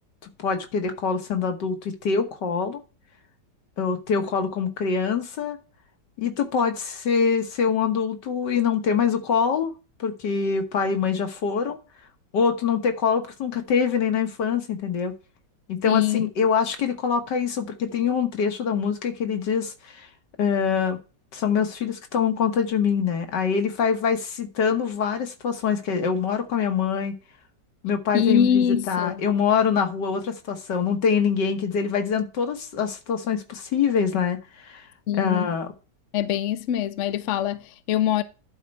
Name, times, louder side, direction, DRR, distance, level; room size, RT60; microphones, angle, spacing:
voice 1, 0.4-2.8 3.8-5.6 6.2-9.7 10.0-11.8 12.3-15.1 15.7-16.0 16.4-20.1 20.4-21.0 21.3-27.2 27.8-34.9 35.1-35.7, left 6 dB, 75° left, 1.9 m, -24 dB
voice 2, 15.8-16.3 28.1-29.2 35.1-35.5 36.1-38.2, left 9 dB, 60° left, 0.8 m, -23 dB
11.0 x 4.5 x 5.2 m
omnidirectional pair, 1.9 m